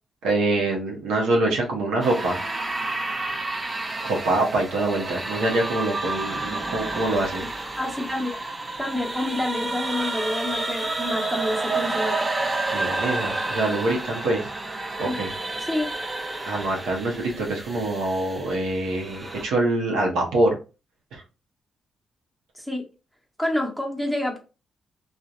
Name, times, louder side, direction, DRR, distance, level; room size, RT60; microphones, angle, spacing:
voice 1, 0.2-2.4 4.0-7.4 12.7-14.5 15.0-15.3 16.5-20.5 21.1-21.2, right 2 dB, 80° right, -2 dB, 0.6 m, -25 dB
sound 1, 2.0-19.5, right 2 dB, 25° right, 0.5 m, -30 dB
voice 2, 7.8-8.4 8.8-12.3 15.0-15.2 15.6-15.9 22.6-22.8 23.4-24.4, left 1 dB, 5° right, 2 dB, 0.9 m, -28 dB
2.7 x 2.0 x 2.4 m, 0.31 s
supercardioid pair, 50°, 0 cm